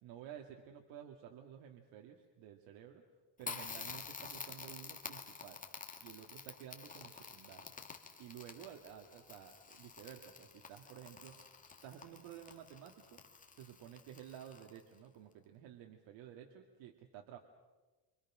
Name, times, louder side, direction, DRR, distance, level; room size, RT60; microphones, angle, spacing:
voice 1, 0.0-3.0 3.4-5.6 6.0-7.7 8.2-11.4 11.8-13.2 13.5-17.4, right 10 dB, 70° right, 2 dB, 2.3 m, -53 dB
Crackle, 3.4-15.0, left 5 dB, 15° left, 2.3 m, -50 dB
28.5 x 26.0 x 6.2 m, 1.2 s
cardioid pair, 140°, 46 cm